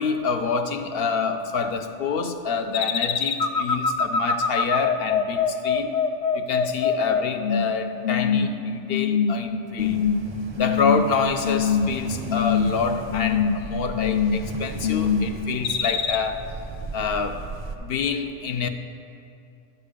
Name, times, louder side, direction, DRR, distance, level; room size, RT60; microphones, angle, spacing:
voice 1, 0.0-6.0 6.3-10.1 10.6-16.5 16.9-17.4 17.8-18.7, left 5 dB, 60° left, 7 dB, 0.7 m, -27 dB
sound 1, 2.7-7.7 8.0-8.5 8.9-9.4 9.8-10.2 10.6-11.1 11.4-12.0 12.3-12.8 13.1-13.6 13.9-14.5 14.8-15.3 15.6-16.2, left 6 dB, 80° left, 0.3 m, -23 dB
sound 2, 9.8-17.8, right 4 dB, 40° right, 0.4 m, -37 dB
10.5 x 6.8 x 5.1 m, 2.6 s
omnidirectional pair, 1.3 m